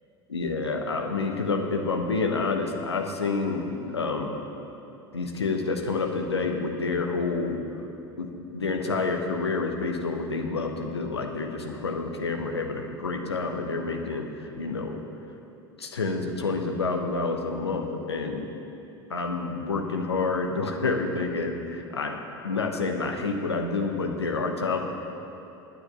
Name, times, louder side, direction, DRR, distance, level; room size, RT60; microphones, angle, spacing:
voice 1, 0.3-4.4 5.1-7.6 8.2-15.0 15.8-18.5 19.1-24.8, left 3 dB, 85° left, 4 dB, 1.1 m, -28 dB
10.0 x 9.2 x 6.7 m, 2.9 s
figure-of-eight pair, 75°, 13 cm